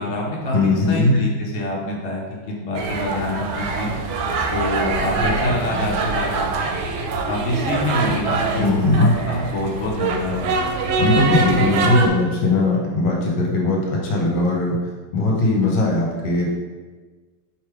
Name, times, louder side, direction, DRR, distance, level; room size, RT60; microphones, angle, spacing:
voice 1, 0.0-3.9 4.5-6.7 7.3-10.5, left 1 dB, 55° left, -3 dB, 0.8 m, -26 dB
voice 2, 0.5-1.2 8.6-9.1 11.0-14.8 15.1-16.5, left 2 dB, 70° left, -2 dB, 1.3 m, -19 dB
sound 1, 2.7-12.1, right 4 dB, 85° right, 1.4 m, -24 dB
3.2 x 3.2 x 4.7 m, 1.3 s
omnidirectional pair, 2.2 m